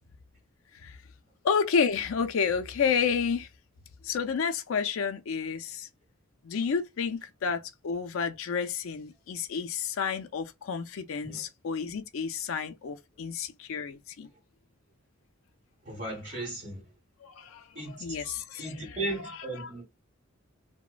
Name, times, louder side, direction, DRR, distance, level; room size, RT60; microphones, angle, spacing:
voice 1, 1.4-3.5 4.0-5.9 6.4-14.3 17.2-19.0 19.2-19.3 19.6-19.8, left 6 dB, 80° left, 0.4 m, -30 dB
voice 2, 15.8-16.8 17.7-18.0 18.6-19.8, right 2 dB, 40° right, 1.6 m, -36 dB
2.9 x 2.0 x 2.4 m
head